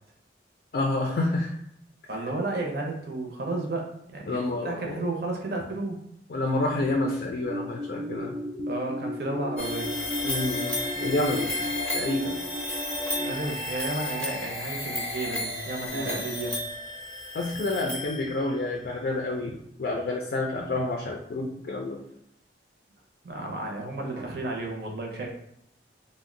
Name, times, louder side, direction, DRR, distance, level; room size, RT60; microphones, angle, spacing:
voice 1, 0.7-1.6 4.3-5.0 6.3-8.3 10.2-11.6 11.9-12.4 15.9-16.2 17.3-19.5 19.8-22.0, left 2 dB, 55° left, 1 dB, 0.4 m, -28 dB
voice 2, 2.1-6.0 8.7-9.9 13.2-16.6 23.2-25.3, right 2 dB, 60° right, 1 dB, 0.6 m, -32 dB
sound 1, 7.4-13.3, equal, 25° right, 0.3 m, -35 dB
sound 2, 9.6-18.6, left 1 dB, 5° left, 0.7 m, -33 dB
2.6 x 2.1 x 3.7 m, 0.78 s
head